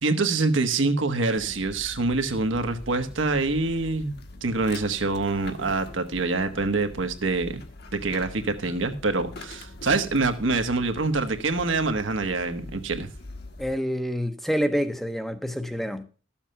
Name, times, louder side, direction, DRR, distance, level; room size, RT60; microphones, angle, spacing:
voice 1, 0.0-7.6 7.9-13.1, right 3 dB, 80° right, 1.3 m, -25 dB
sound 1, 1.3-13.8, left 2 dB, 55° left, 1.3 m, -43 dB
voice 2, 13.6-16.0, equal, ahead, 0.7 m, -27 dB
12.5 x 7.2 x 5.6 m
head